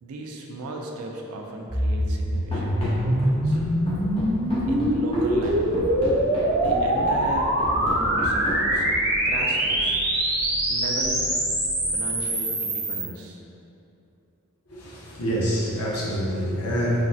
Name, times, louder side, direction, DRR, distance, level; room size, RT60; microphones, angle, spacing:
voice 1, 0.0-3.6 4.1-6.0 6.6-8.9 9.2-10.0 10.7-11.2 11.9-13.4, right 2 dB, 75° right, 1 dB, 0.3 m, -36 dB
sound 1, 1.7-13.1, right 1 dB, 45° right, 0.7 m, -24 dB
sound 2, 2.4-12.2, equal, 10° right, 0.8 m, -42 dB
Run, 2.5-9.1, equal, 25° left, 0.5 m, -33 dB
voice 2, 14.7-17.1, equal, 85° left, -5 dB, 0.6 m, -26 dB
3.2 x 2.0 x 2.6 m, 2.8 s
head